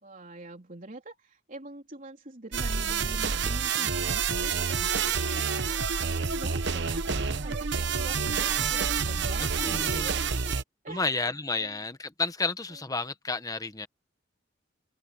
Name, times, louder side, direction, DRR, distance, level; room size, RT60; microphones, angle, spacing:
voice 1, 0.0-10.5 10.8-11.8, right 2 dB, 45° right, 3.7 m, -44 dB
sound 1, 2.5-10.6, right 6 dB, 65° right, 1.0 m, -28 dB
voice 2, 9.6-10.1 10.9-13.9, left 3 dB, 20° left, 1.1 m, -31 dB
open air
head